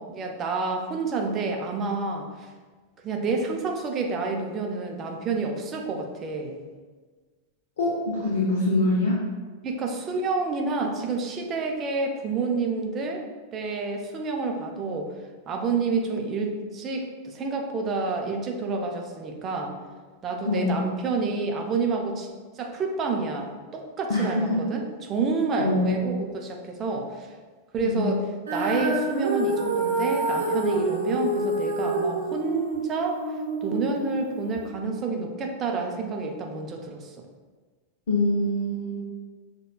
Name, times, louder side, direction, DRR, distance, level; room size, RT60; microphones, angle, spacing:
voice 1, 0.0-2.5 3.0-6.6 9.6-13.2 13.5-15.1 15.5-19.8 20.2-27.4 27.7-28.2 28.5-37.1, right 4 dB, 30° right, 2 dB, 0.5 m, -29 dB
voice 2, 7.8-9.2 20.5-20.8 24.1-24.6 25.6-26.1 27.8-28.1 38.1-39.0, left 2 dB, 60° left, -5 dB, 0.6 m, -24 dB
Female singing, 28.5-34.7, right 1 dB, 70° right, 0.7 m, -27 dB
6.3 x 2.2 x 2.3 m, 1.4 s
figure-of-eight pair, 90°, 0 cm